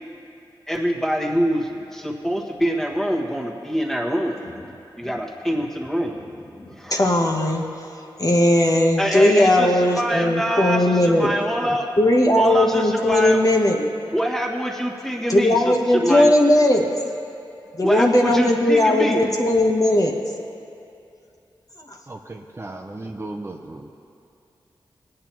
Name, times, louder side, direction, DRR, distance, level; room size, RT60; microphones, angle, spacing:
voice 1, 0.7-4.4 5.0-6.1 6.8-7.1 9.0-11.9 12.4-13.4 13.7-16.3 17.8-19.2, equal, 5° left, -1 dB, 1.5 m, -25 dB
voice 2, 6.5-7.7 8.2-11.3 11.6-13.8 15.3-16.8 17.8-20.1, left 1 dB, 40° left, 1 dB, 1.0 m, -18 dB
voice 3, 22.1-24.0, right 2 dB, 30° right, 3 dB, 0.6 m, -35 dB
20.0 x 8.7 x 3.1 m, 2.6 s
wide cardioid pair, 70°, 9 cm